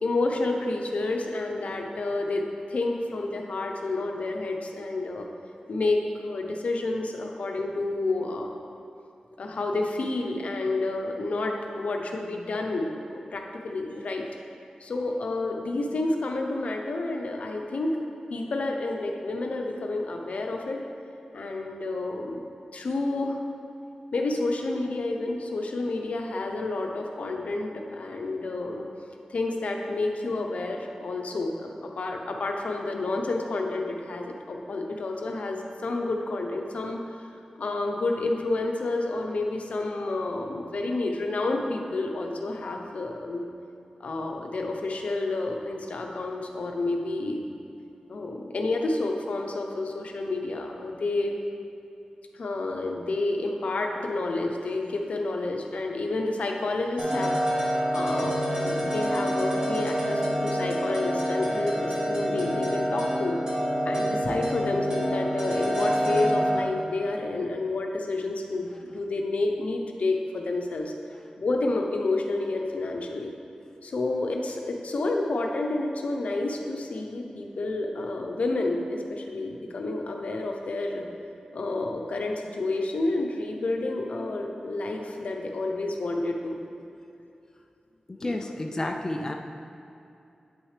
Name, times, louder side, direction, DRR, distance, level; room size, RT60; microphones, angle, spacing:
voice 1, 0.0-5.3 5.7-8.5 9.4-14.2 14.8-18.0 18.3-20.8 21.3-22.5 22.7-23.4 24.1-28.9 29.3-37.0 37.6-43.5 44.0-47.6 48.1-51.4 52.3-63.4 63.8-70.9 71.4-73.3 73.8-81.0 81.5-86.6 88.2-88.5, left 2 dB, 70° left, 2 dB, 0.7 m, -29 dB
sound 1, 57.0-66.6, equal, 30° right, 1.5 m, -27 dB
voice 2, 88.1-89.3, left 1 dB, 25° left, 2 dB, 0.4 m, -31 dB
9.0 x 6.1 x 3.2 m, 2.7 s
wide cardioid pair, 105°, 2 cm